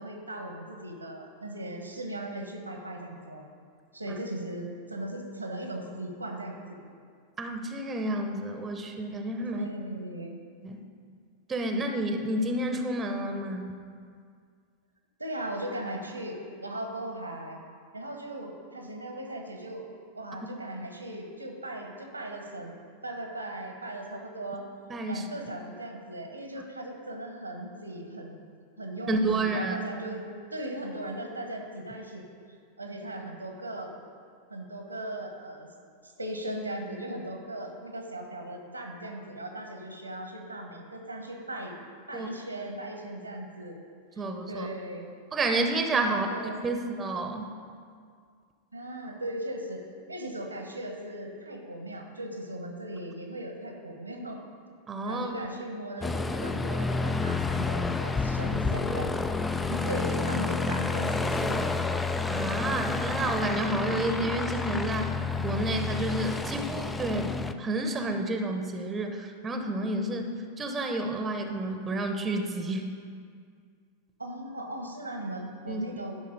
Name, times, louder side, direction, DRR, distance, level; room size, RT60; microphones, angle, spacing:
voice 1, 0.0-3.5 3.9-6.8 9.5-10.4 15.2-17.6 17.9-19.9 20.1-22.7 23.0-24.6 25.0-28.5 28.8-30.2 30.5-32.2 32.8-34.0 34.5-35.7 36.0-41.8 42.1-43.8 44.1-45.0 46.1-46.8 48.7-49.8 50.1-54.4 55.0-61.7 74.2-76.2, right 1 dB, 85° right, 3 dB, 1.2 m, -38 dB
voice 2, 7.4-9.7 10.6-10.8 11.5-13.7 24.9-25.2 29.1-29.8 42.1-42.3 44.2-44.7 45.3-46.3 46.6-47.4 54.9-55.4 62.3-65.1 65.4-67.3 67.6-72.9 75.7-75.9, right 2 dB, 20° right, 5 dB, 0.9 m, -30 dB
Aircraft, 56.0-67.5, left 3 dB, 10° left, 0.4 m, -29 dB
12.0 x 5.5 x 5.3 m, 2.1 s
figure-of-eight pair, 90°, 0 cm